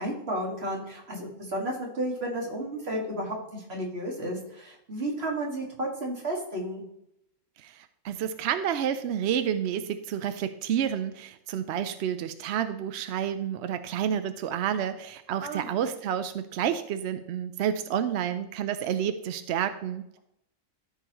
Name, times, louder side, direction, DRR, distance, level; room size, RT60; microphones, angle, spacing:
voice 1, 0.0-6.8 15.4-15.7, right 1 dB, 40° right, -1 dB, 2.1 m, -32 dB
voice 2, 7.6-20.2, right 9 dB, 70° right, 10 dB, 0.6 m, -30 dB
14.0 x 4.8 x 3.0 m, 0.77 s
omnidirectional pair, 1.6 m